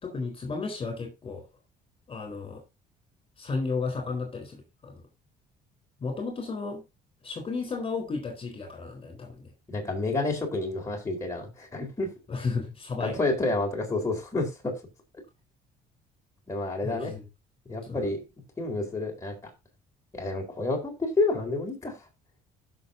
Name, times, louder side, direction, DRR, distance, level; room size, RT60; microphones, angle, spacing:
voice 1, 0.0-1.4 2.1-2.6 3.4-5.0 6.0-6.8 7.2-9.5 12.3-13.2 16.8-17.2 17.8-18.1, left 4 dB, 35° left, 4.1 m, -33 dB
voice 2, 9.7-12.1 13.0-14.7 16.5-17.1 17.7-18.2 18.6-19.4 20.1-22.0, left 2 dB, 15° left, 4.2 m, -29 dB
16.5 x 6.7 x 2.8 m
cardioid pair, 110°, 17 cm